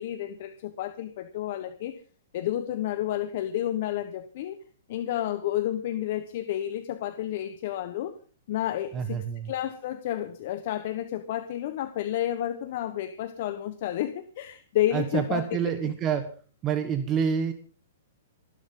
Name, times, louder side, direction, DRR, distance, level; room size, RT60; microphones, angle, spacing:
voice 1, 0.0-2.0 2.3-4.6 4.9-8.1 8.5-15.9, left 12 dB, 50° left, 1.2 m, -31 dB
voice 2, 8.9-9.5 14.9-16.3 16.6-17.5, right 7 dB, 20° right, 1.3 m, -27 dB
27.5 x 11.5 x 3.9 m
hypercardioid pair, 155°, 0 cm